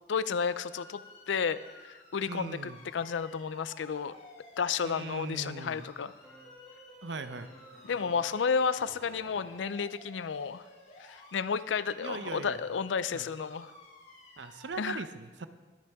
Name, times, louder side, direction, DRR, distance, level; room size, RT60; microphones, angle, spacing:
voice 1, 0.1-1.0 1.3-1.6 1.8-4.2 4.6-6.1 7.9-10.6 11.0-13.7 14.8-15.0, left 6 dB, 85° left, 15 dB, 0.5 m, -32 dB
sound 1, 0.7-14.7, left 2 dB, 40° left, 2.6 m, -54 dB
voice 2, 2.3-2.8 4.8-5.9 7.0-7.5 12.0-12.6 13.1-13.3 14.4-15.5, right 4 dB, 75° right, 11 dB, 0.7 m, -40 dB
sound 2, 6.2-9.9, equal, ahead, 2.6 m, -54 dB
20.5 x 8.6 x 3.5 m, 1.4 s
head